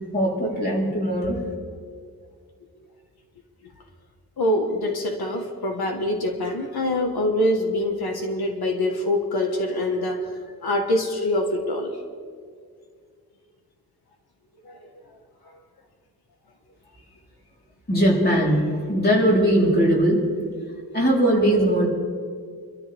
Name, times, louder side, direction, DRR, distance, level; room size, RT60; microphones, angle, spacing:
voice 1, 0.1-1.4 17.9-20.2 20.9-21.9, right 1 dB, 25° left, -4 dB, 4.1 m, -20 dB
voice 2, 4.4-12.0 14.6-15.2, left 1 dB, 85° left, 3 dB, 1.7 m, -25 dB
27.0 x 13.0 x 3.6 m, 2.1 s
wide cardioid pair, 165°, 36 cm